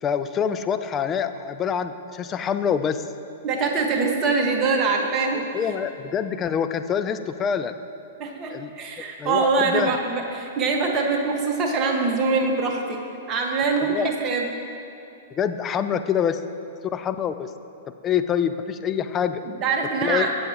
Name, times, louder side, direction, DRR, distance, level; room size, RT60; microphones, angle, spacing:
voice 1, 0.0-3.0 5.5-7.8 8.5-8.7 9.2-9.9 13.8-14.1 15.4-16.4 16.9-17.5 18.0-19.4 20.0-20.3, left 8 dB, 25° left, 10 dB, 0.6 m, -25 dB
voice 2, 3.4-5.7 8.2-14.5 19.4-20.3, right 4 dB, 30° right, 1 dB, 1.8 m, -24 dB
22.5 x 8.0 x 3.1 m, 2.8 s
figure-of-eight pair, 105°, 0 cm